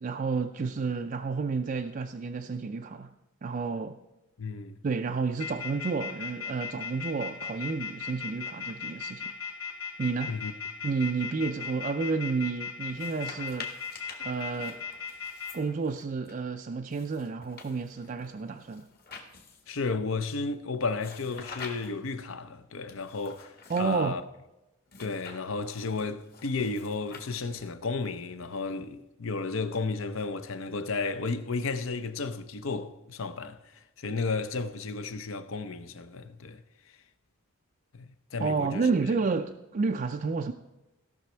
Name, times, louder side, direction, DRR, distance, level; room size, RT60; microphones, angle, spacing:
voice 1, 0.0-4.0 4.8-9.3 10.0-10.4 10.8-13.7 14.2-14.8 15.5-18.9 23.7-24.2 38.4-40.5, right 4 dB, 40° right, 0.4 m, -30 dB
voice 2, 4.4-4.8 10.3-10.5 19.7-24.2 25.0-36.6 37.9-38.9, left 4 dB, 65° left, 0.7 m, -33 dB
sound 1, 5.4-15.5, left 6 dB, 85° left, 2.7 m, -36 dB
sound 2, 12.9-16.3 16.9-19.8 21.0-22.1 22.9-24.0 24.9-27.7, left 4 dB, 45° left, 1.5 m, -48 dB
16.5 x 6.0 x 4.4 m
head